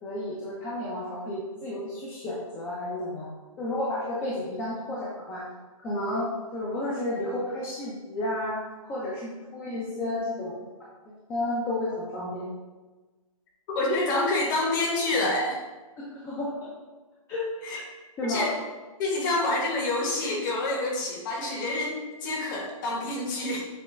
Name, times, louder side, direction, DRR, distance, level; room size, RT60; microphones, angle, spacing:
voice 1, 0.0-3.3 3.6-5.4 5.8-8.6 8.9-10.7 11.3-12.5 16.0-16.5 17.3-17.5 18.2-18.5, left 1 dB, 15° left, -7 dB, 0.5 m, -31 dB
voice 2, 13.7-15.6 17.6-17.8 18.3-18.6 19.0-23.6, left 2 dB, 35° left, -1 dB, 1.1 m, -27 dB
6.7 x 2.3 x 3.1 m, 1.3 s
hypercardioid pair, 145°, 19 cm